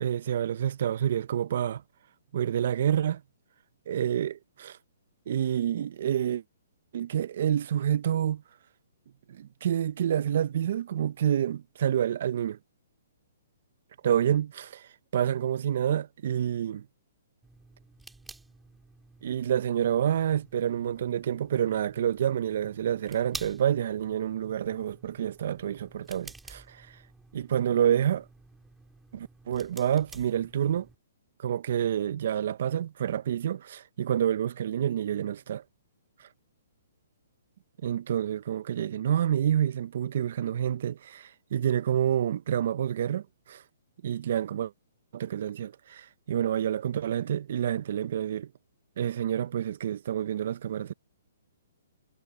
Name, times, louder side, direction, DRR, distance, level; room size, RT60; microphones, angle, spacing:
voice 1, 0.0-1.8 2.3-3.2 3.9-4.8 5.3-6.4 6.9-8.4 9.3-12.6 14.0-16.9 19.2-26.9 27.3-28.2 29.1-30.9 31.4-35.6 37.8-43.6 44.0-44.7 45.1-48.5 49.0-50.9, right 10 dB, 55° right, 0.5 m, -28 dB
sound 1, 17.4-31.0, right 3 dB, 5° right, 3.7 m, -50 dB
hypercardioid pair, 155°, 0 cm